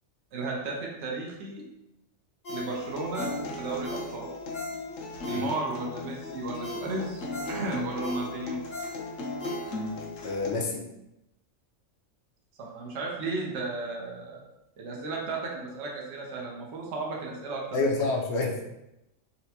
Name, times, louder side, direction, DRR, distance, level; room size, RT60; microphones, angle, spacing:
voice 1, 0.3-1.6 2.5-4.3 5.2-8.6 12.6-14.4 14.8-17.9, right 3 dB, 65° right, -2 dB, 0.9 m, -34 dB
Ringtone, 2.4-5.9 6.3-6.4 6.6-10.1 10.5-10.6, equal, 35° left, 0.9 m, -39 dB
Acoustic guitar, 2.5-10.5, left 2 dB, 90° left, 1.0 m, -37 dB
voice 2, 10.2-10.8 17.7-18.6, left 3 dB, 65° left, 1 dB, 0.8 m, -28 dB
3.9 x 2.1 x 2.7 m, 0.90 s
omnidirectional pair, 1.3 m